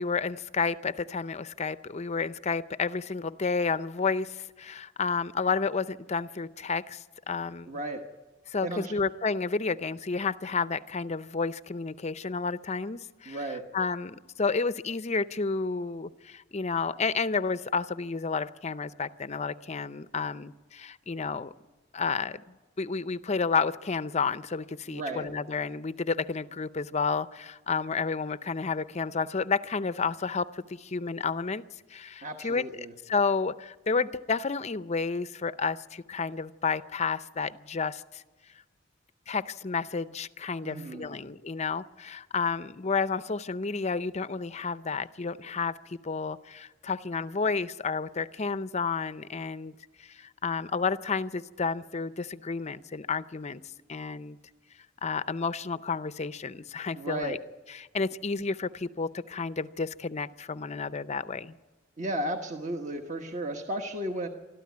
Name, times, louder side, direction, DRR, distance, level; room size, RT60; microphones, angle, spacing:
voice 1, 0.0-7.7 8.5-21.5 21.9-22.4 22.8-31.6 31.9-38.2 39.3-49.7 50.0-53.6 53.9-54.4 55.0-57.4 57.7-61.5, left 4 dB, 35° left, 14 dB, 0.6 m, -31 dB
voice 2, 7.7-8.0 8.6-8.9 13.3-13.6 24.9-25.3 32.2-32.9 40.6-41.2 57.0-57.4 62.0-64.3, right 1 dB, 40° right, 3 dB, 1.3 m, -34 dB
24.5 x 13.5 x 9.5 m, 1.2 s
head